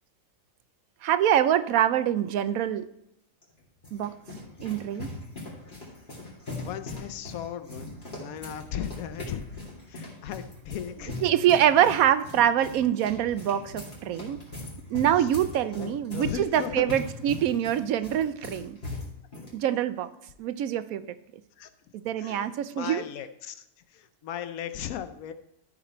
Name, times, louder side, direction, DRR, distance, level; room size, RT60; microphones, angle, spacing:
voice 1, 1.0-2.9 3.9-4.1 4.6-5.1 11.2-14.4 14.9-18.8 19.5-20.1 20.4-21.1 21.9-23.0, right 10 dB, 80° right, 12 dB, 1.0 m, -24 dB
sound 1, 3.4-19.5, left 2 dB, 35° left, 2.8 m, -40 dB
voice 2, 6.6-9.6 9.9-11.2 11.8-11.9 15.2-15.3 15.8-16.9 21.6-21.7 22.2-25.3, left 9 dB, 85° left, 10 dB, 1.1 m, -37 dB
13.5 x 5.1 x 4.3 m, 0.80 s
omnidirectional pair, 1.5 m